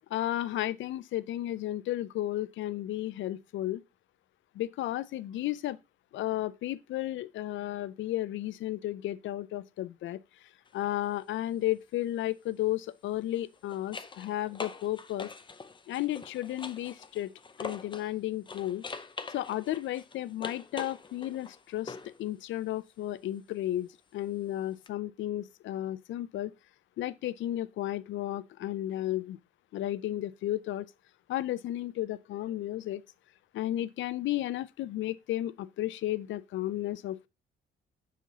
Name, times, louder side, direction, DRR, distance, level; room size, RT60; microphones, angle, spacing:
voice 1, 0.1-3.8 4.5-5.8 6.1-15.3 15.9-17.3 17.6-18.8 19.3-26.5 27.0-29.4 29.7-30.9 31.3-33.0 33.5-37.3, left 14 dB, 75° left, 0.5 m, -33 dB
sound 1, 10.7-10.9 13.2-18.1 18.5-22.2 24.9-25.0, left 4 dB, 25° left, 0.6 m, -43 dB
5.8 x 5.0 x 3.9 m
cardioid pair, 90°, 20 cm